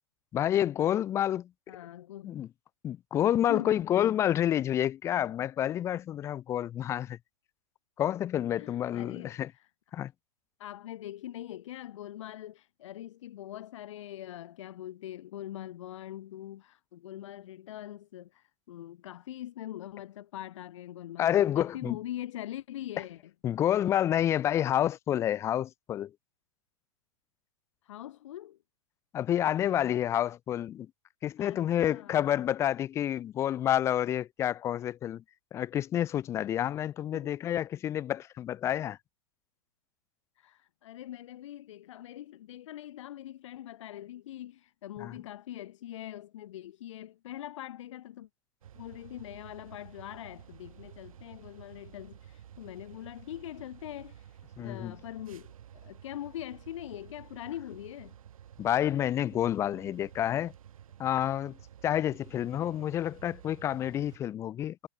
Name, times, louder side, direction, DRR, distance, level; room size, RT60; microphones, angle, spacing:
voice 1, 0.3-1.8 2.2-2.5 2.8-7.2 8.0-9.5 9.9-10.1 21.2-22.0 23.4-26.1 29.1-30.9 31.2-35.2 35.5-39.0 45.0-45.1 54.6-54.9 58.6-60.5 61.0-61.6 61.8-64.9, left 11 dB, 15° left, 0.8 m, -29 dB
voice 2, 1.7-2.4 3.5-3.8 8.6-9.7 10.6-23.2 27.8-28.6 31.4-32.3 37.1-37.4 40.4-48.3 48.7-58.2, left 13 dB, 60° left, 1.5 m, -43 dB
sound 1, 48.6-64.2, right 10 dB, 75° right, 7.6 m, -52 dB
hypercardioid pair, 160°, 18 cm